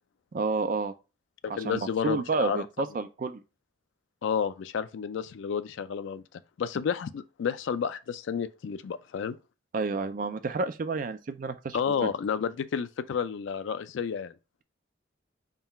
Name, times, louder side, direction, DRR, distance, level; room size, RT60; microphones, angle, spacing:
voice 1, 0.3-0.9 1.5-3.4 9.7-12.1, right 3 dB, 40° right, 0.3 m, -30 dB
voice 2, 1.4-2.7 4.2-6.2 6.6-9.4 11.7-14.3, left 7 dB, 70° left, 0.3 m, -31 dB
3.7 x 2.3 x 3.9 m
head